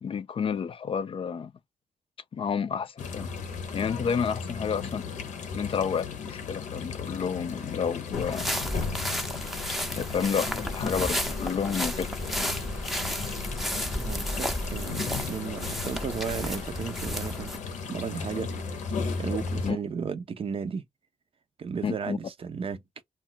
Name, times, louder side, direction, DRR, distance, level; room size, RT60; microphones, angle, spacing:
voice 1, 0.0-1.5 2.3-3.3 3.7-5.1 5.5-8.5 9.9-12.1 19.6-19.8 21.8-22.2, left 6 dB, 45° left, 0.4 m, -30 dB
sound 1, 3.0-19.7, left 5 dB, 80° left, 0.7 m, -35 dB
sound 2, 8.1-17.6, equal, ahead, 0.6 m, -33 dB
voice 2, 13.9-20.8 21.6-22.8, right 6 dB, 50° right, 0.5 m, -35 dB
2.3 x 2.1 x 3.8 m
supercardioid pair, 55°, 12 cm